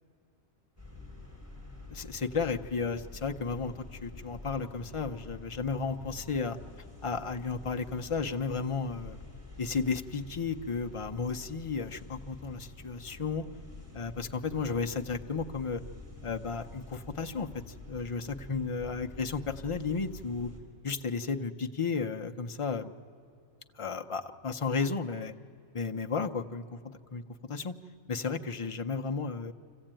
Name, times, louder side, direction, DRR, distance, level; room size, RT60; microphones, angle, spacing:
sound 1, 0.8-20.6, left 2 dB, 10° right, 4.0 m, -48 dB
voice 1, 1.9-6.6 7.0-9.2 9.6-13.4 13.9-15.8 16.2-20.5 20.8-22.9 23.7-25.3 25.7-27.7 28.1-29.5, left 4 dB, 40° left, 5 dB, 0.5 m, -33 dB
25.0 x 16.0 x 8.9 m, 2.6 s
omnidirectional pair, 1.3 m